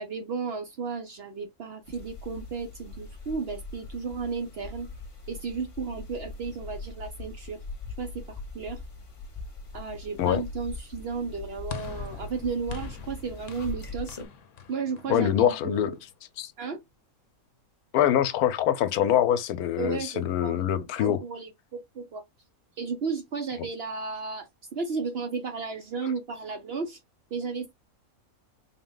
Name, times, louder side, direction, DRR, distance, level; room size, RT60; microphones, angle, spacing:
voice 1, 0.0-4.9 5.3-7.6 8.0-8.8 9.7-14.1 14.7-16.0 16.6-16.8 19.8-20.6 21.0-22.2 22.8-27.0 27.3-27.7, right 5 dB, 60° right, 0.7 m, -34 dB
sound 1, 1.8-14.3, left 3 dB, 30° left, 0.7 m, -41 dB
sound 2, 11.7-16.1, left 7 dB, 65° left, 0.9 m, -44 dB
voice 2, 15.1-15.9 16.4-16.5 17.9-21.2, left 10 dB, 90° left, 1.1 m, -24 dB
4.0 x 2.2 x 3.8 m
omnidirectional pair, 1.6 m